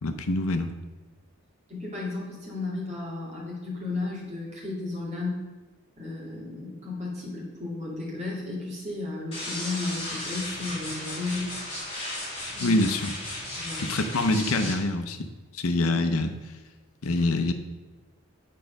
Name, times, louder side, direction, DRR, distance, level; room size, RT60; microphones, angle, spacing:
voice 1, 0.0-0.7 12.6-13.1 13.8-15.3 15.5-16.4 17.0-17.5, left 2 dB, 85° left, 8 dB, 0.7 m, -25 dB
voice 2, 1.7-5.4 6.0-11.5 12.5-12.8 13.6-13.9, left 3 dB, 30° right, -5 dB, 2.4 m, -34 dB
sound 1, 9.3-14.7, left 1 dB, 25° left, 3.0 m, -35 dB
9.3 x 4.6 x 5.2 m, 1.3 s
head